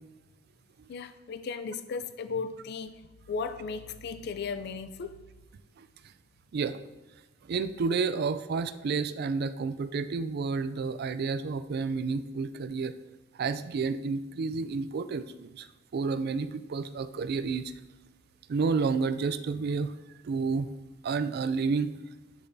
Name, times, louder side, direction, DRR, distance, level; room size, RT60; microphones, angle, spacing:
voice 1, 0.9-2.9 3.3-5.1, left 5 dB, 55° left, 11 dB, 0.4 m, -35 dB
voice 2, 7.5-12.9 13.4-15.7 15.9-17.6 18.5-19.9 20.2-20.7 21.0-21.9, right 4 dB, 50° right, 13 dB, 0.3 m, -30 dB
7.9 x 6.8 x 2.7 m, 1.1 s
head